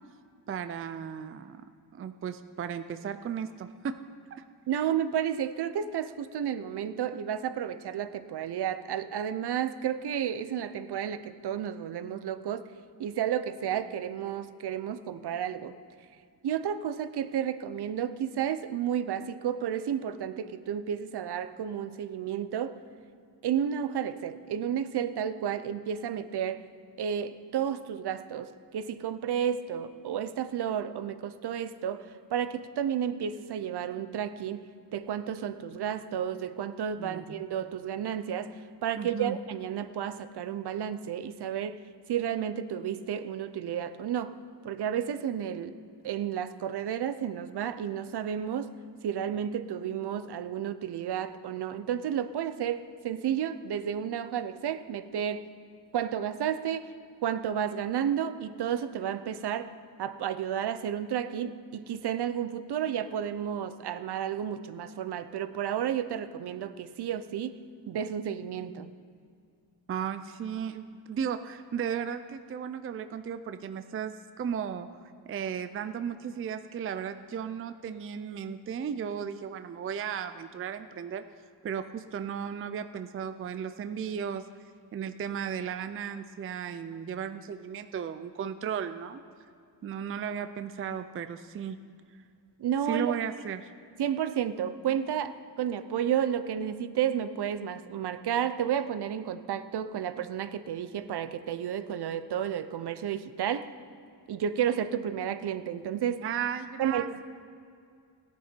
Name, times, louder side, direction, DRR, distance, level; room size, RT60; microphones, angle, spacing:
voice 1, 0.5-1.6 1.9-4.0 4.3-4.4 37.0-37.2 39.0-39.4 69.9-81.2 81.6-84.5 84.9-89.2 89.8-91.8 92.9-93.7 106.2-107.2, right 8 dB, 35° right, 10 dB, 0.4 m, -35 dB
voice 2, 4.7-12.6 13.0-15.8 16.4-22.7 23.4-26.6 27.0-34.6 34.9-41.8 42.1-44.3 44.6-45.8 46.0-48.7 49.0-55.5 55.9-56.9 57.2-59.7 60.0-67.6 67.9-68.9 92.6-93.1 94.0-103.7 104.3-106.2 106.8-107.2, right 9 dB, 65° right, 12 dB, 0.7 m, -32 dB
18.0 x 10.5 x 4.4 m, 2.3 s
wide cardioid pair, 180°, 42 cm